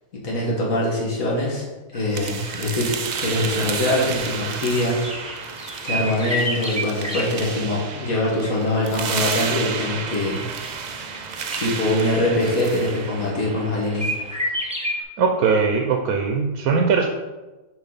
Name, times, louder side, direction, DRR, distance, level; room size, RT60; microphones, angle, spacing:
voice 1, 0.1-1.7 1.9-2.9 3.2-5.1 5.8-10.4 11.6-14.3, left 1 dB, 75° left, -4 dB, 2.2 m, -23 dB
sound 1, 1.9-15.0, equal, 5° right, 1.1 m, -33 dB
sound 2, 2.1-14.1, right 6 dB, 65° right, 0.4 m, -31 dB
voice 2, 15.2-17.1, right 5 dB, 90° right, 3 dB, 1.2 m, -20 dB
6.9 x 5.3 x 4.1 m, 1.1 s
omnidirectional pair, 1.5 m